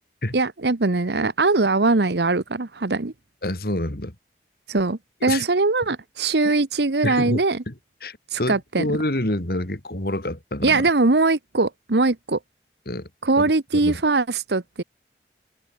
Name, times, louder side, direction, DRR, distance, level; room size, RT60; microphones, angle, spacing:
voice 1, 0.3-3.1 4.7-7.6 8.3-8.8 10.6-12.4 13.2-14.8, right 3 dB, 75° right, 1.1 m, -21 dB
voice 2, 3.4-4.1 5.3-5.4 6.4-6.5 7.0-7.4 7.7-7.8 8.0-10.9 12.9-13.1 13.4-13.5 13.8-14.0, left 1 dB, 60° left, 2.7 m, -27 dB
head